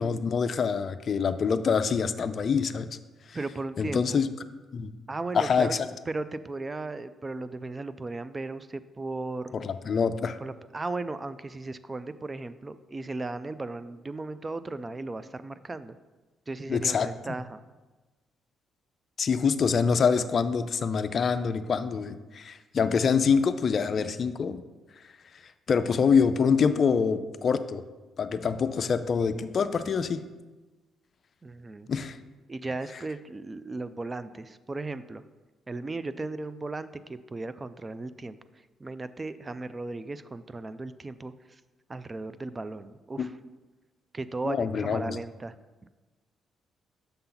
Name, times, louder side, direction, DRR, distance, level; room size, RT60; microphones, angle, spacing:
voice 1, 0.0-2.9 3.3-3.4 3.8-4.3 4.7-4.9 5.3-5.9 9.5-10.4 16.7-17.1 19.2-24.6 25.7-27.8 28.2-30.2 31.9-32.2 43.2-43.3 44.4-45.2, left 6 dB, 50° left, 10 dB, 0.4 m, -25 dB
voice 2, 3.3-4.2 5.1-5.7 6.1-9.5 10.4-16.0 16.5-17.6 31.4-31.9 32.5-35.2 35.7-38.4 38.8-41.3 41.9-43.3 44.1-45.5 45.8-45.9, right 3 dB, 25° right, 14 dB, 0.3 m, -36 dB
6.7 x 5.7 x 3.9 m, 1.2 s
cardioid pair, 90°, 0 cm